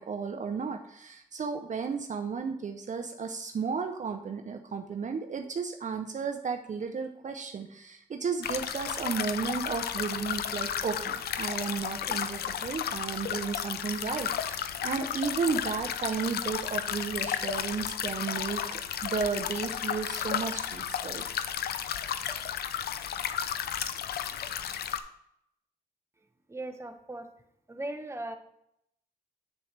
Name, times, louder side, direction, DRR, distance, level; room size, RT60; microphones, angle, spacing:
voice 1, 0.0-21.2, right 5 dB, 50° right, 6 dB, 0.6 m, -33 dB
sound 1, 8.4-25.0, left 9 dB, 85° left, 0.5 m, -33 dB
voice 2, 26.5-27.3 27.7-28.3, right 1 dB, 15° right, 6 dB, 0.9 m, -38 dB
7.4 x 6.9 x 3.3 m, 0.75 s
cardioid pair, 65°, 16 cm